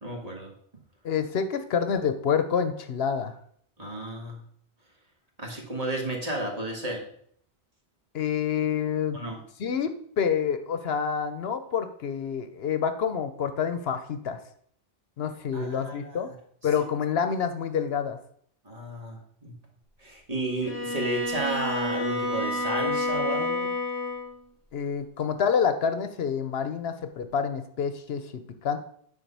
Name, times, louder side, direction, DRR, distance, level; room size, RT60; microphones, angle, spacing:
voice 1, 0.0-0.5 3.8-4.4 5.4-7.0 9.1-9.4 15.5-16.2 18.7-19.5 20.0-23.7, right 1 dB, 35° right, -1 dB, 1.8 m, -33 dB
voice 2, 1.0-3.4 8.1-9.2 9.6-14.4 15.2-16.3 16.6-18.2 24.7-28.8, left 7 dB, 75° left, 9 dB, 0.9 m, -28 dB
Bowed string instrument, 20.6-24.4, left 2 dB, 10° right, 1.6 m, -29 dB
9.1 x 3.8 x 5.4 m, 0.63 s
omnidirectional pair, 1.1 m